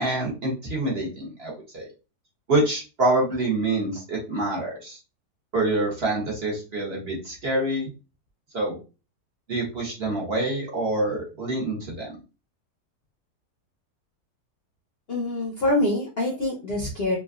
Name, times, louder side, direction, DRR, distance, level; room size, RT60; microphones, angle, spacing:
voice 1, 0.0-1.9 2.5-5.0 5.5-7.9 8.5-8.8 9.5-12.1, right 2 dB, 45° right, -3 dB, 1.0 m, -26 dB
voice 2, 15.1-17.2, left 1 dB, 55° left, -2 dB, 0.7 m, -25 dB
3.1 x 2.4 x 2.3 m, 0.31 s
omnidirectional pair, 1.7 m